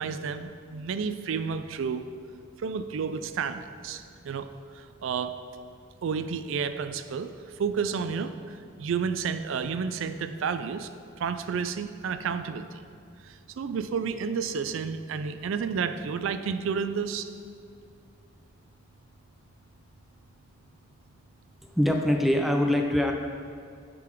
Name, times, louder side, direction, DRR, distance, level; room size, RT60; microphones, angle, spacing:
voice 1, 0.0-2.1 2.6-4.5 4.7-5.4 6.0-10.9 11.2-12.8 13.2-17.3, right 6 dB, 70° right, 10 dB, 0.4 m, -31 dB
voice 2, 21.8-23.1, left 1 dB, ahead, 2 dB, 0.4 m, -23 dB
10.5 x 3.9 x 4.5 m, 2.4 s
head